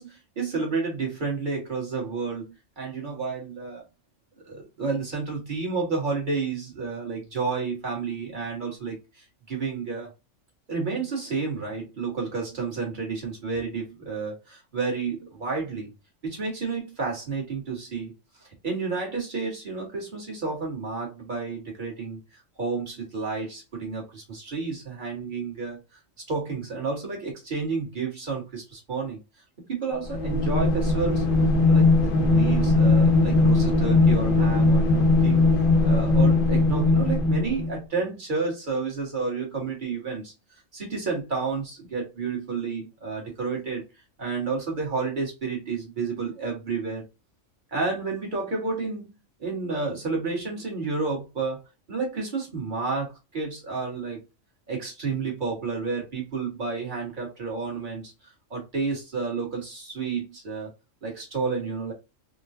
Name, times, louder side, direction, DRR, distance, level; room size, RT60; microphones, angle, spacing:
voice 1, 0.0-3.8 4.4-10.1 10.7-15.9 16.2-18.1 18.6-22.2 22.6-25.8 26.3-29.2 29.7-31.3 31.7-35.5 35.8-40.3 40.7-43.8 44.2-47.1 47.7-51.6 51.9-54.2 54.7-60.7 61.0-61.9, right 4 dB, 40° right, 1.5 m, -30 dB
sound 1, 30.1-37.8, left 3 dB, 65° left, 0.5 m, -20 dB
3.7 x 2.2 x 2.6 m
omnidirectional pair, 1.3 m